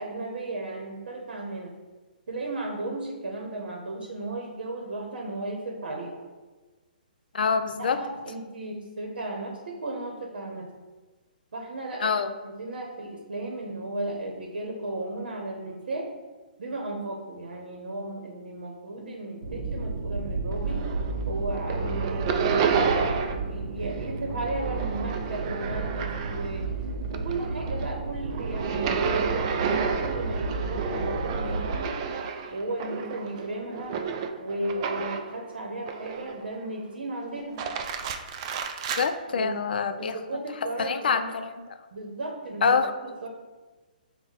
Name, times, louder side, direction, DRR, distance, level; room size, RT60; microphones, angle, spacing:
voice 1, 0.0-1.7 2.3-6.2 7.8-10.7 11.5-12.1 12.4-16.1 16.6-20.8 21.3-23.1 23.5-26.6 27.1-32.0 32.5-34.0 34.4-37.6 39.3-39.6 40.0-41.3 41.9-42.7 43.2-43.3, right 2 dB, 80° right, 1 dB, 0.8 m, -35 dB
voice 2, 7.3-8.0 12.0-12.3 39.0-40.2 40.8-41.7 42.6-42.9, left 5 dB, 75° left, 9 dB, 0.4 m, -25 dB
sound 1, 19.4-31.8, right 3 dB, 55° right, 0.7 m, -32 dB
sound 2, 20.5-21.2 21.5-23.5 23.8-26.7 27.0-35.4 35.9-36.5 37.4-39.1, right 6 dB, 35° right, 0.3 m, -31 dB
5.6 x 2.2 x 4.3 m, 1.3 s
hypercardioid pair, 155°, 5 cm